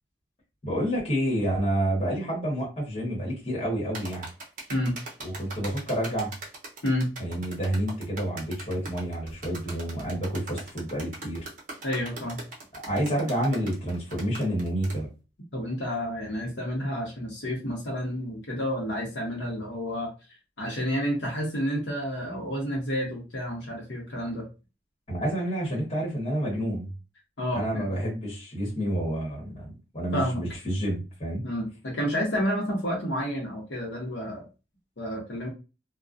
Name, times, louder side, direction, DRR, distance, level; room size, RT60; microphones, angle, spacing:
voice 1, 0.6-4.2 5.2-6.3 7.2-11.5 12.8-15.1 25.1-26.9 27.5-29.7 29.9-31.4, right 1 dB, 35° left, -5 dB, 1.1 m, -29 dB
sound 1, 3.9-15.0, right 2 dB, 45° right, 0.7 m, -41 dB
voice 2, 11.8-12.4 15.5-20.1 20.6-24.5 27.4-27.8 30.1-30.4 31.4-34.5 35.0-35.5, equal, 80° left, -1 dB, 0.8 m, -30 dB
2.3 x 2.1 x 2.5 m, 0.30 s
head